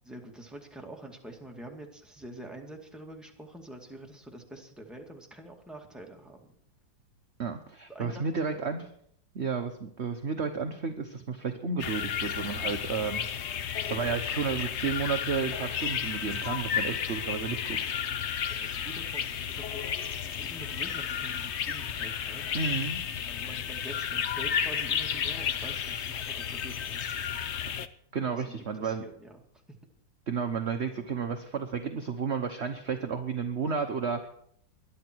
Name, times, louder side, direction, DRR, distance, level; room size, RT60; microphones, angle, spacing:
voice 1, 0.1-6.5 7.9-8.7 18.5-19.9 20.4-22.4 23.3-27.1 28.3-29.4 29.7-29.8, right 1 dB, ahead, 0 dB, 2.1 m, -46 dB
voice 2, 7.4-8.9 9.3-13.2 13.9-17.9 22.5-23.0 28.1-29.0 30.3-34.3, right 5 dB, 45° right, 6 dB, 1.1 m, -32 dB
sound 1, 11.8-27.9, left 8 dB, 65° left, 0.7 m, -32 dB
20.5 x 11.5 x 4.7 m, 0.66 s
omnidirectional pair, 2.1 m